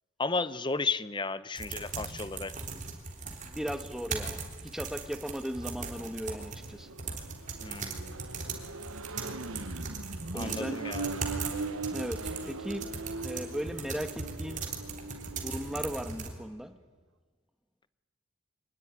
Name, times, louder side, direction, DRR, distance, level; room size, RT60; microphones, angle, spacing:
voice 1, 0.2-2.5 7.6-8.1 10.3-11.1, left 3 dB, 20° left, 16 dB, 0.7 m, -33 dB
sound 1, 1.6-16.3, right 4 dB, 35° right, 3.4 m, -39 dB
voice 2, 3.4-6.9 10.3-10.8 11.9-12.9 13.2-14.7 15.3-16.7, equal, ahead, 8 dB, 1.4 m, -37 dB
Accelerating revving vroom, 5.8-16.2, right 3 dB, 85° right, 1.1 m, -40 dB
24.5 x 19.5 x 9.8 m, 1.4 s
head